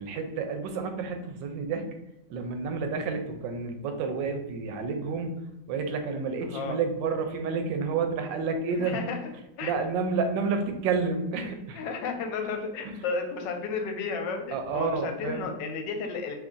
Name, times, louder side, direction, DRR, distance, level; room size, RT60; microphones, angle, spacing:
voice 1, 0.0-1.9 2.3-5.3 5.7-9.0 9.6-11.8 12.8-12.9 14.5-15.5, right 4 dB, 90° right, 6 dB, 1.3 m, -30 dB
voice 2, 8.7-9.2 9.6-9.7 11.7-16.3, left 5 dB, 80° left, 4 dB, 1.3 m, -33 dB
3.0 x 2.6 x 3.6 m, 0.94 s
omnidirectional pair, 1.9 m